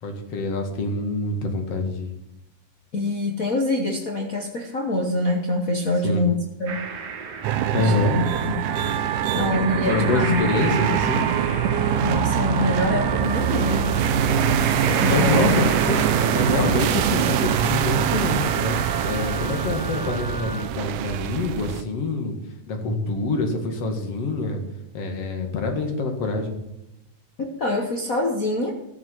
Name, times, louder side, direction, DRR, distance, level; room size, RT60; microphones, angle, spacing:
voice 1, 0.0-2.1 6.0-6.2 7.7-8.2 9.9-11.3 15.0-18.8 19.0-22.3 22.7-24.6 24.9-26.5, left 3 dB, 55° left, 4 dB, 2.9 m, -26 dB
voice 2, 2.9-6.8 7.8-8.7 9.3-10.4 10.7-10.9 12.0-13.9 14.9-15.7 27.4-28.7, left 1 dB, 75° left, 2 dB, 0.7 m, -25 dB
sound 1, 6.7-17.8, right 6 dB, 55° right, 2.4 m, -34 dB
sound 2, 7.4-21.8, right 9 dB, 80° right, 2.0 m, -23 dB
Wind instrument woodwind instrument, 8.6-20.7, equal, 20° right, 3.9 m, -36 dB
14.0 x 7.3 x 7.6 m, 0.90 s
omnidirectional pair, 3.6 m